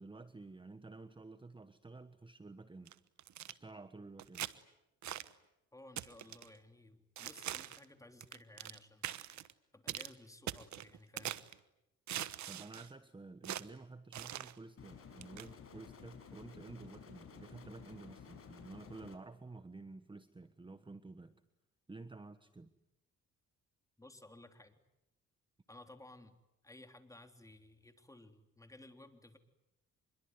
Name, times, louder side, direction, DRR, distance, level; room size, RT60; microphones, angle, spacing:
voice 1, 0.0-2.9 3.5-4.5 12.5-21.4 21.9-22.7, right 3 dB, 15° right, 11 dB, 1.2 m, -51 dB
sound 1, 2.9-3.5 4.2-4.5 5.0-5.3 6.0-6.5 7.2-7.9 8.2-8.8 9.0-9.5 9.9-10.1 10.5-11.5 12.1-12.9 13.4-13.7 14.1-14.5 15.2-15.5, right 12 dB, 70° right, 1.2 m, -42 dB
voice 2, 5.7-9.1 9.7-11.4 24.0-24.8 25.7-26.4 26.6-29.4, left 2 dB, 10° left, 6 dB, 3.4 m, -57 dB
sound 2, 14.8-19.2, left 7 dB, 50° left, 5.4 m, -54 dB
26.0 x 23.0 x 9.5 m, 0.90 s
cardioid pair, 90°, 30 cm